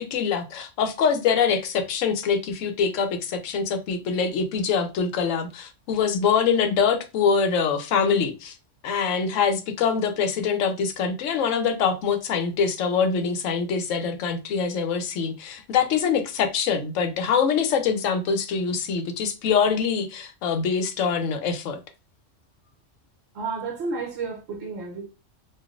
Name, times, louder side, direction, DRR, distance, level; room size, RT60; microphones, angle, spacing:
voice 1, 0.0-8.6 8.8-21.8, left 6 dB, 85° left, 1.0 m, -24 dB
voice 2, 23.3-25.1, right 4 dB, 65° right, 0.9 m, -31 dB
3.2 x 2.5 x 2.4 m
omnidirectional pair, 1.3 m